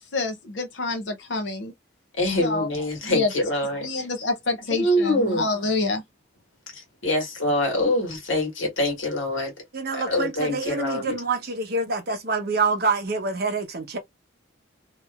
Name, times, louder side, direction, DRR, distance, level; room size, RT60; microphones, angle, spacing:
voice 1, 0.1-1.7 2.4-2.7 3.0-3.3 3.8-6.0, left 3 dB, 65° left, 0.6 m, -27 dB
voice 2, 2.2-4.1 4.7-5.4 6.7-9.6 9.9-11.1, left 1 dB, 80° left, 1.6 m, -25 dB
voice 3, 9.7-14.0, right 3 dB, 50° right, 0.7 m, -26 dB
2.8 x 2.5 x 2.2 m
head